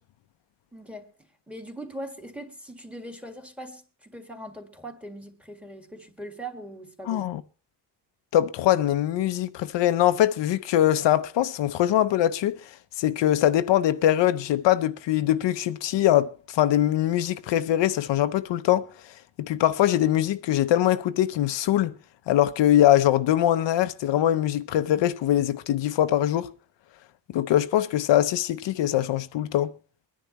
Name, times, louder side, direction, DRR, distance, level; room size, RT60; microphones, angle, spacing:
voice 1, 0.7-1.1 1.5-7.4, right 1 dB, 5° right, 1.6 m, -40 dB
voice 2, 7.1-7.4 8.3-12.6 13.0-18.9 19.4-21.9 22.3-26.5 27.3-29.7, left 12 dB, 80° left, 0.7 m, -22 dB
23.0 x 10.5 x 3.0 m
cardioid pair, 130°, 43 cm